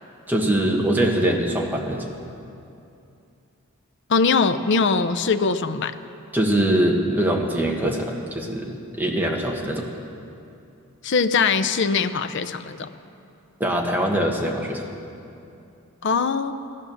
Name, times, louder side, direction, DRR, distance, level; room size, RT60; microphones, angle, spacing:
voice 1, 0.3-2.1 6.3-9.9 13.6-14.9, right 1 dB, 10° right, -1 dB, 1.5 m, -23 dB
voice 2, 4.1-5.9 11.0-12.9 16.0-16.5, left 5 dB, 55° left, 10 dB, 0.5 m, -21 dB
15.5 x 12.0 x 7.0 m, 2.6 s
head